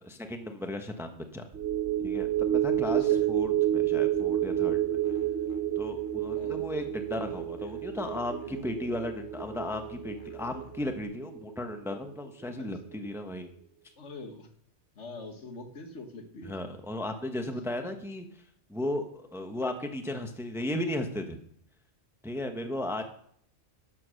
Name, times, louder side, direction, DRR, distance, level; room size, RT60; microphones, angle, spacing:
voice 1, 0.0-1.4 2.0-4.8 5.8-13.5 16.4-18.3 18.7-21.4 22.2-23.0, left 1 dB, ahead, 6 dB, 1.1 m, -35 dB
sound 1, 1.5-12.1 12.5-12.6, right 12 dB, 65° right, 1.1 m, -30 dB
voice 2, 2.8-3.3 6.4-6.6 12.6-12.7 14.0-14.5 15.0-16.6, left 2 dB, 65° left, 6 dB, 1.8 m, -44 dB
Musical instrument, 4.2-11.0, left 7 dB, 45° left, 0.9 m, -52 dB
12.0 x 7.2 x 6.4 m, 0.64 s
omnidirectional pair, 1.3 m